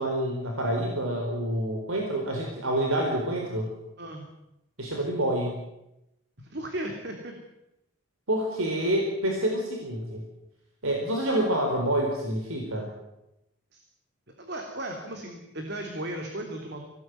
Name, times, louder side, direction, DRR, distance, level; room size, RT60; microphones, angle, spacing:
voice 1, 0.0-3.7 4.8-5.6 8.3-10.2 10.8-12.9, right 1 dB, 75° right, 1 dB, 4.5 m, -27 dB
voice 2, 6.4-7.3 13.7-13.8 14.4-16.8, right 1 dB, 50° right, 3 dB, 3.3 m, -36 dB
25.0 x 18.5 x 9.6 m, 0.90 s
head